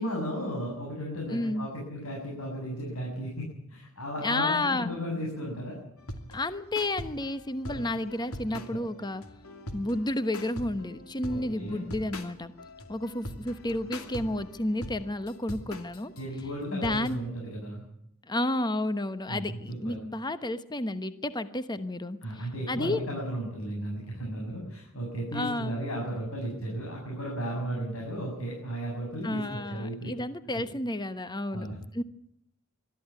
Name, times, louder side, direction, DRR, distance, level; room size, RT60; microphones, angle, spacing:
voice 1, 0.0-5.8 8.5-8.8 11.3-11.8 16.2-17.8 19.3-19.6 19.8-20.0 22.2-30.1 30.6-30.7 31.5-31.7, equal, 70° left, -2 dB, 7.8 m, -35 dB
voice 2, 1.3-1.7 4.2-5.0 6.3-9.2 9.7-12.5 12.9-16.1 16.7-17.2 18.3-23.0 25.3-25.8 29.2-31.7 31.9-32.0, left 1 dB, 20° left, 12 dB, 1.1 m, -31 dB
sound 1, 6.0-17.2, left 1 dB, 90° left, 2.7 m, -42 dB
22.0 x 14.0 x 9.6 m, 0.78 s
head